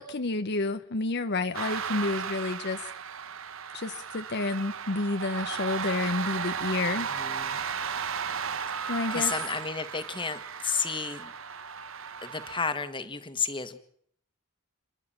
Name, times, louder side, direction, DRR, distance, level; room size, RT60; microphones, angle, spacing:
voice 1, 0.0-2.9 3.7-7.1 8.9-9.3, left 3 dB, 55° left, 9 dB, 0.9 m, -30 dB
sound 1, 1.5-12.6, right 6 dB, 70° right, 1.1 m, -35 dB
voice 2, 7.0-7.6 8.7-11.3 12.2-13.8, left 5 dB, 25° left, 10 dB, 1.7 m, -32 dB
29.5 x 11.0 x 8.8 m, 0.66 s
head